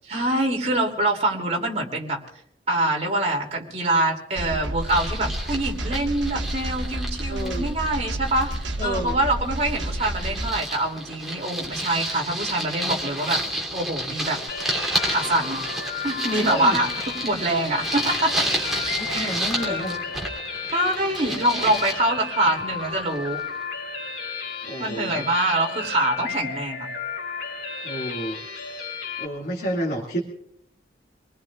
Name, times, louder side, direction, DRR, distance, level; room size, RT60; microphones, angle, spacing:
voice 1, 0.1-2.2 2.7-13.4 13.7-14.4 15.1-15.6 16.0-18.5 19.1-19.3 19.6-20.0 20.7-23.4 24.8-26.9, right 1 dB, 35° right, 1 dB, 2.9 m, -25 dB
sound 1, 4.4-10.5, right 1 dB, 80° right, 1.2 m, -30 dB
sound 2, 4.8-8.8 9.1-23.5, right 1 dB, ahead, 3.1 m, -31 dB
voice 2, 7.3-7.7 8.8-9.2 16.4-16.8 19.0-19.9 24.6-25.4 27.8-28.7 29.2-30.2, right 1 dB, 55° left, -3 dB, 2.3 m, -30 dB
sound 3, 14.5-29.3, left 5 dB, 75° left, 2.9 m, -33 dB
27.0 x 20.0 x 2.4 m, 0.75 s
head